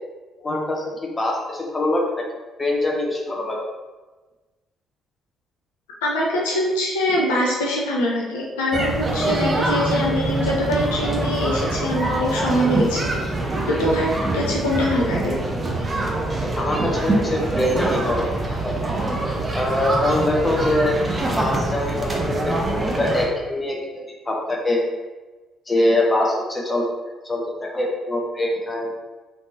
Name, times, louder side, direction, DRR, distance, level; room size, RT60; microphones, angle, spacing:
voice 1, 0.4-2.1 2.6-3.6 16.6-18.7 19.5-21.0 21.4-24.8 25.7-26.8 27.2-28.9, left 1 dB, 25° left, -2 dB, 0.9 m, -23 dB
voice 2, 6.0-13.0 13.7-15.4, left 1 dB, 75° left, -4 dB, 0.5 m, -23 dB
sound 1, 8.7-23.3, right 2 dB, 30° right, 0.6 m, -24 dB
3.2 x 3.2 x 2.7 m, 1.2 s
figure-of-eight pair, 45°, 0 cm